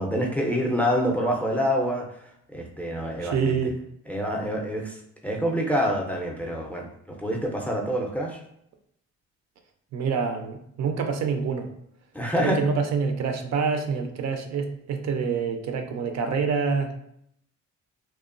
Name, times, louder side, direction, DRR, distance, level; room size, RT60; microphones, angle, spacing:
voice 1, 0.0-2.0 2.5-3.6 4.1-5.0 5.2-8.4 12.1-12.6, equal, 5° left, 0 dB, 0.4 m, -26 dB
voice 2, 3.2-3.8 9.9-11.7 12.4-17.0, right 5 dB, 60° right, 5 dB, 0.5 m, -26 dB
2.9 x 2.1 x 2.4 m, 0.73 s
cardioid pair, 90°, 30 cm